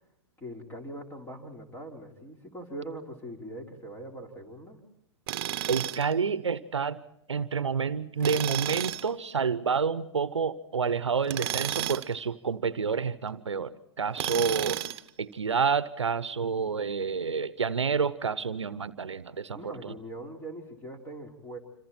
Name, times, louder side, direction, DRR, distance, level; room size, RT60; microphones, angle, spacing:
voice 1, 0.4-4.8 19.5-21.6, right 1 dB, 15° left, 3 dB, 4.4 m, -41 dB
Tools, 5.3-6.1 8.2-9.1 11.2-12.1 14.2-15.1, right 13 dB, 55° right, 1.1 m, -32 dB
voice 2, 5.7-7.0 7.3-14.8 15.2-19.9, right 5 dB, 90° right, 16 dB, 0.9 m, -29 dB
27.0 x 26.0 x 4.4 m, 0.76 s
hypercardioid pair, 115°, 15 cm